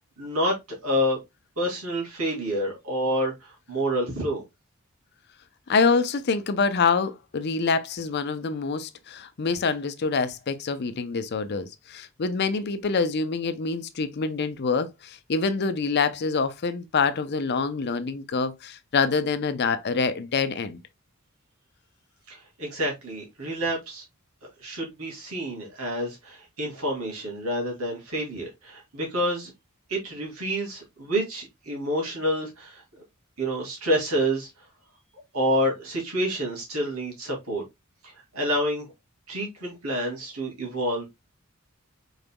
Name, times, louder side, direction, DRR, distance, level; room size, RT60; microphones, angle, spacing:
voice 1, 0.2-0.6 0.8-1.2 1.6-4.4 22.3-24.0 24.6-29.5 29.9-32.8 33.4-34.5 35.3-37.6 38.0-38.9 39.3-41.1, equal, 90° right, 2.2 m, -28 dB
voice 2, 5.7-20.8, left 4 dB, 50° left, 0.5 m, -26 dB
5.2 x 4.0 x 2.2 m
head